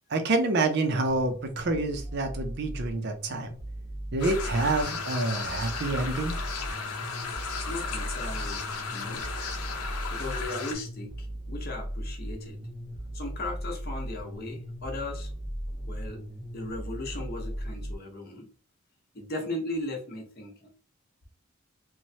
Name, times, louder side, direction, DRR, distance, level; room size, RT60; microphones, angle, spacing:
voice 1, 0.1-3.5 4.1-6.4, right 2 dB, 50° right, 0.5 m, -27 dB
sound 1, 1.1-17.9, equal, 15° left, 0.6 m, -37 dB
sound 2, 4.2-10.7, left 5 dB, 90° left, 0.6 m, -35 dB
voice 2, 7.7-9.3 9.8-12.6 13.1-15.3 15.9-16.2 16.5-18.5 19.1-20.7, left 2 dB, 45° left, 0.8 m, -37 dB
3.0 x 2.1 x 2.7 m
head